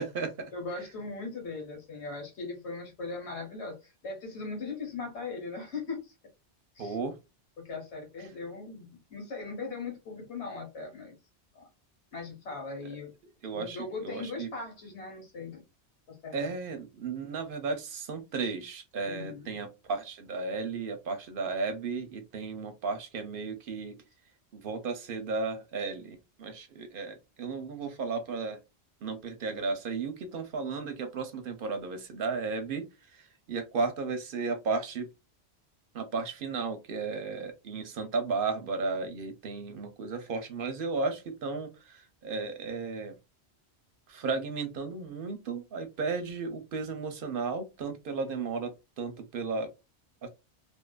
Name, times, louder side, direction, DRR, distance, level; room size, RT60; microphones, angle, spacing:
voice 1, 0.0-0.5 6.8-7.2 13.4-14.5 16.3-24.0 24.5-28.6 29.0-35.1 35.9-43.2 44.1-49.7 50.2-50.3, right 4 dB, 60° right, 0.6 m, -34 dB
voice 2, 0.5-6.1 6.7-7.0 7.6-11.1 11.5-11.7 12.1-13.1 13.5-15.6 16.1-16.5 19.1-19.5, left 3 dB, 90° left, 1.4 m, -39 dB
2.6 x 2.4 x 2.2 m
omnidirectional pair, 1.1 m